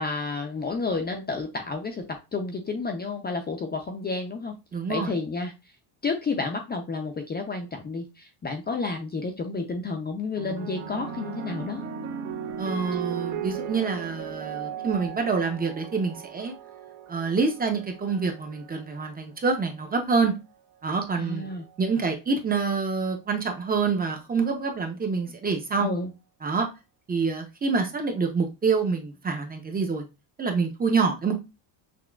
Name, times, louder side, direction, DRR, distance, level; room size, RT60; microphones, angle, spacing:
voice 1, 0.0-4.5 4.9-5.5 6.0-11.8 21.2-21.7 25.8-26.1, left 3 dB, 20° left, 4 dB, 0.5 m, -31 dB
voice 2, 4.7-5.1 12.6-16.5 17.1-20.3 20.8-21.5 21.8-25.9 26.4-26.7 27.1-30.0 30.4-31.3, right 4 dB, 20° right, 4 dB, 0.6 m, -26 dB
sound 1, 10.4-18.9 19.8-20.2, right 8 dB, 60° right, 0.9 m, -37 dB
6.0 x 2.2 x 2.2 m, 0.26 s
cardioid pair, 125°, 48 cm